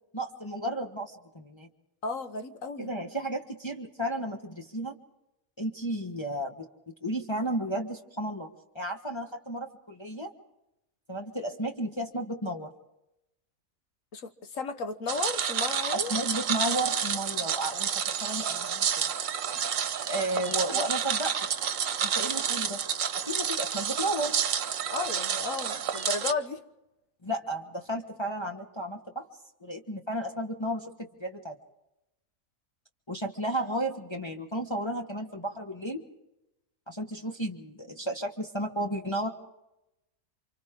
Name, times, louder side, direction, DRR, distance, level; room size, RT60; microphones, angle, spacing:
voice 1, 0.1-1.7 2.8-5.0 5.6-6.7 7.0-8.5 8.7-10.3 11.1-12.7 15.9-18.9 20.0-21.7 22.0-22.8 23.2-24.3 27.2-29.3 29.6-31.5 33.1-36.0 36.9-39.3, right 1 dB, 20° left, 1.4 m, -33 dB
voice 2, 2.0-2.9 14.1-16.1 20.7-20.9 24.9-26.6, left 4 dB, 70° left, 1.7 m, -34 dB
sound 1, 15.1-26.3, right 8 dB, 70° right, 1.3 m, -30 dB
29.0 x 25.5 x 3.8 m
omnidirectional pair, 1.4 m